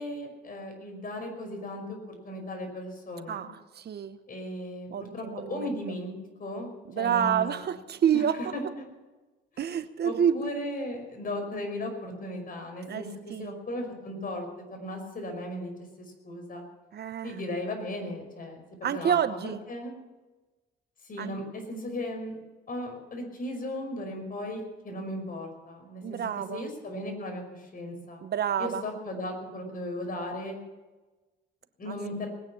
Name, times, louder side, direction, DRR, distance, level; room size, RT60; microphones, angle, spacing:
voice 1, 0.0-2.0 2.2-3.4 4.3-6.1 6.4-7.7 8.1-8.2 8.5-8.6 9.5-9.7 10.0-13.1 13.4-15.7 16.0-16.6 17.2-19.2 19.4-19.9 21.0-22.4 22.7-26.2 26.5-28.2 28.6-30.6 31.8-32.3, left 1 dB, 45° left, 3 dB, 5.3 m, -36 dB
voice 2, 3.3-4.2 4.9-5.7 6.9-8.4 9.6-10.6 12.9-13.0 13.3-13.5 16.9-17.4 18.8-19.6 21.2-21.4 26.0-26.6 28.2-28.8 31.9-32.0, right 8 dB, 55° right, 13 dB, 0.9 m, -28 dB
20.0 x 9.6 x 7.1 m, 1.2 s
cardioid pair, 90°, 20 cm